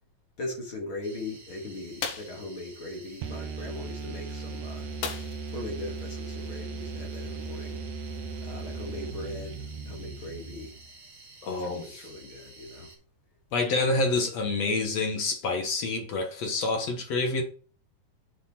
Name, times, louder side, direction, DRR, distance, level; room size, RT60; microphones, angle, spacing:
voice 1, 0.4-4.9 5.5-7.8 8.4-10.7 11.6-12.9 13.8-13.9, left 2 dB, 40° left, 3.0 m, -39 dB
sound 1, 1.0-13.0, right 3 dB, 35° right, 4.4 m, -51 dB
sound 2, 2.0-2.4 5.0-5.6 6.0-6.1 6.5-6.6, left 6 dB, 80° left, 3.2 m, -35 dB
sound 3, 3.2-10.9, right 4 dB, 70° right, 1.9 m, -37 dB
voice 2, 11.4-12.0 13.5-17.4, left 3 dB, 55° left, 2.2 m, -27 dB
7.8 x 6.5 x 4.2 m
omnidirectional pair, 4.0 m